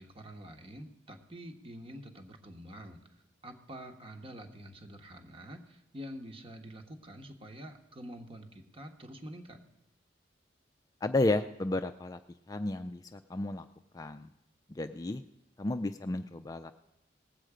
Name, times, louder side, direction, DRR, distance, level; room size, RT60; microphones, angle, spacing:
voice 1, 0.0-3.0 3.4-9.6, equal, 30° right, 5 dB, 1.3 m, -47 dB
voice 2, 11.0-12.2 12.5-13.7 13.9-14.3 14.7-15.2 15.6-16.7, left 2 dB, 20° left, 8 dB, 0.4 m, -32 dB
19.0 x 7.8 x 4.9 m, 0.92 s
head